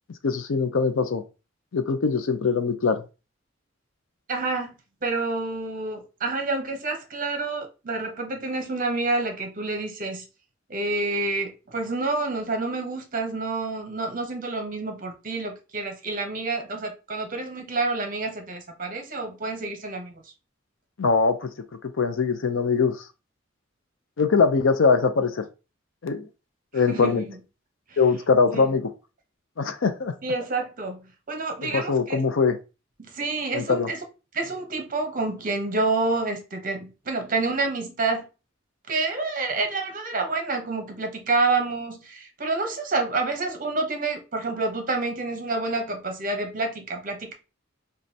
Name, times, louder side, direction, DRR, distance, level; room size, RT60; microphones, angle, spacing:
voice 1, 0.2-1.2 1.7-3.0 21.0-21.5 21.8-23.0 24.2-25.4 26.0-26.2 26.7-27.2 28.0-28.9 29.6-30.1 31.6-32.6 33.5-33.9, left 4 dB, 80° left, 0.6 m, -22 dB
voice 2, 4.3-4.7 5.0-10.2 10.7-20.2 26.9-27.4 28.5-28.7 30.2-32.2 33.0-34.0 34.3-38.3 38.9-47.3, right 3 dB, 45° right, 0.8 m, -28 dB
5.1 x 2.3 x 2.7 m
head